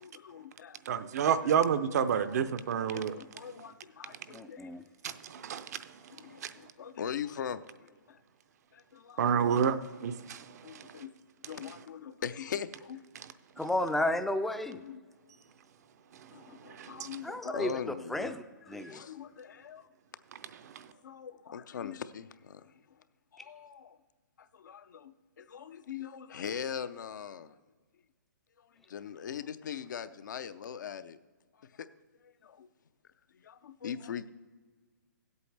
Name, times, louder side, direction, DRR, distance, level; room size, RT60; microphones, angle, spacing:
voice 1, 0.0-0.8 1.4-1.5 2.2-2.4 2.9-4.9 5.5-5.7 6.1-8.2 8.7-9.2 10.6-11.1 11.5-13.0 14.7-15.0 16.3-18.3 18.6-19.9 20.9-23.0 23.3-24.0 24.4-27.6 28.6-31.2 31.5-31.9 32.1-32.7 33.3-34.3, left 8 dB, 65° left, 0.6 m, -41 dB
voice 2, 0.9-3.2 5.0-6.0 6.4-6.5 9.2-11.0 16.2-17.1 20.6-20.9, right 7 dB, 55° right, 0.6 m, -30 dB
voice 3, 4.3-4.8 13.6-14.8 17.2-17.7 18.1-19.0, left 1 dB, ahead, 0.4 m, -32 dB
16.0 x 8.3 x 3.3 m
hypercardioid pair, 140°, 11 cm